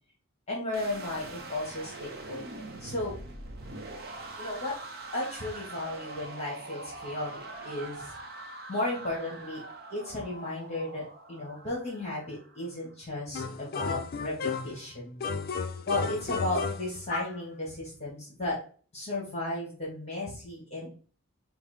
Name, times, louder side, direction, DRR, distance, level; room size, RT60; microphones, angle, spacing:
voice 1, 0.5-3.2 4.4-4.8 5.1-8.1 8.7-9.6 9.9-15.2 15.9-18.6 18.9-20.9, left 2 dB, 30° left, -4 dB, 1.4 m, -34 dB
sound 1, 0.7-12.8, right 2 dB, 45° right, 0.6 m, -43 dB
sound 2, 13.3-14.8 15.2-17.4, left 5 dB, 45° left, 0.4 m, -33 dB
5.5 x 2.0 x 4.2 m, 0.40 s
head